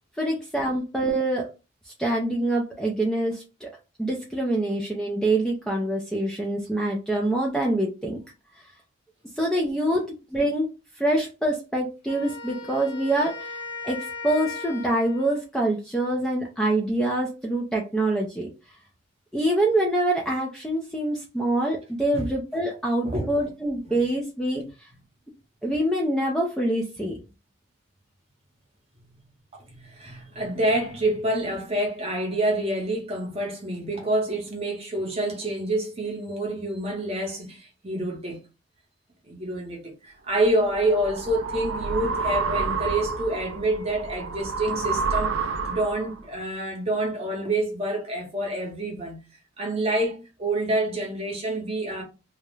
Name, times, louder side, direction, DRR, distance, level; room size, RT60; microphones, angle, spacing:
voice 1, 0.2-1.5 1.8-3.7 4.0-8.2 9.4-10.0 10.3-18.5 19.3-24.9 25.6-27.2, right 1 dB, 5° left, 0.3 m, -25 dB
Wind instrument woodwind instrument, 12.1-15.4, left 4 dB, 40° left, 0.9 m, -37 dB
voice 2, 23.0-23.5 23.8-24.1 29.7-38.4 39.3-45.4 45.7-49.2 49.6-52.0, right 1 dB, 30° right, 0.7 m, -27 dB
sound 1, 40.4-46.2, right 4 dB, 70° right, 0.3 m, -29 dB
2.3 x 2.0 x 3.0 m
head